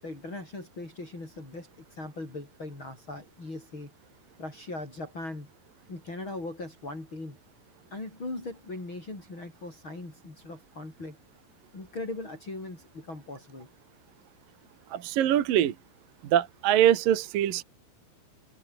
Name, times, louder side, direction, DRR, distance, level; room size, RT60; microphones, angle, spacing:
voice 1, 0.0-3.9 4.4-5.5 5.9-7.4 7.9-11.2 11.7-13.7, left 2 dB, 30° left, 7.7 m, -39 dB
voice 2, 14.9-15.7 16.3-17.6, right 11 dB, 65° right, 3.2 m, -23 dB
omnidirectional pair, 4.6 m